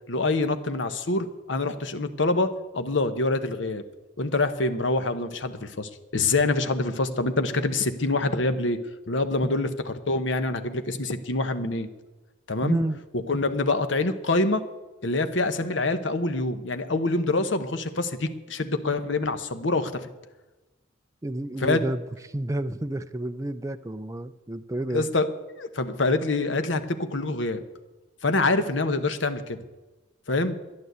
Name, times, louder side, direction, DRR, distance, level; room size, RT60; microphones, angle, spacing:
voice 1, 0.1-3.8 4.2-8.8 9.1-11.9 12.5-12.8 13.3-14.6 15.0-20.1 21.6-21.8 24.9-25.3 25.6-27.6 28.2-29.6 30.3-30.6, left 2 dB, 75° left, 10 dB, 1.1 m, -26 dB
voice 2, 12.6-13.0 21.2-25.1, right 1 dB, 15° right, 9 dB, 0.5 m, -30 dB
12.0 x 11.0 x 8.1 m, 1.1 s
head